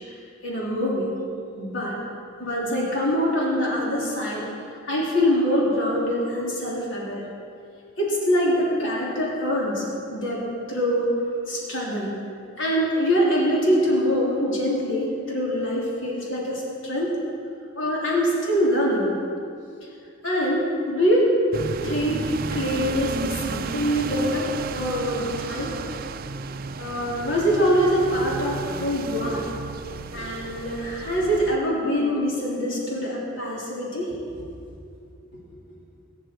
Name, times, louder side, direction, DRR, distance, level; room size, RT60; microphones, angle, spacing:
voice 1, 0.4-1.1 1.6-2.0 2.4-4.5 4.8-7.2 8.0-10.4 10.7-11.1 11.5-12.1 12.6-17.2 17.7-19.1 20.2-21.3 21.8-25.7 26.8-29.4 30.1-34.5, equal, 70° left, -5 dB, 3.4 m, -24 dB
sound 1, 21.5-31.6, right 4 dB, 50° right, 0.5 m, -33 dB
21.5 x 10.0 x 4.6 m, 2.4 s
head